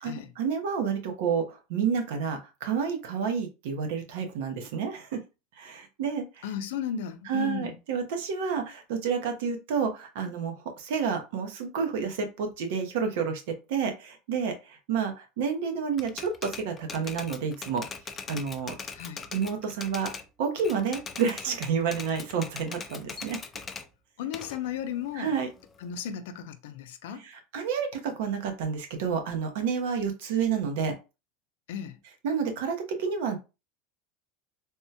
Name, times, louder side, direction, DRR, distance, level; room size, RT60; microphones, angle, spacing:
voice 1, 0.0-5.2 5.6-6.4 7.3-13.4 13.7-17.8 18.3-18.7 19.3-20.1 20.4-23.4 25.1-25.5 27.2-30.9 32.2-33.4, right 6 dB, 75° right, 0.7 m, -30 dB
voice 2, 6.4-7.8 18.9-19.3 24.2-25.3 25.8-27.2 31.7-32.0, left 8 dB, 85° left, 0.4 m, -35 dB
Typewriter, 16.0-20.3 20.6-23.9 24.3-26.0, left 5 dB, 20° left, 0.3 m, -41 dB
3.5 x 2.2 x 2.8 m
supercardioid pair, 160°, 0 cm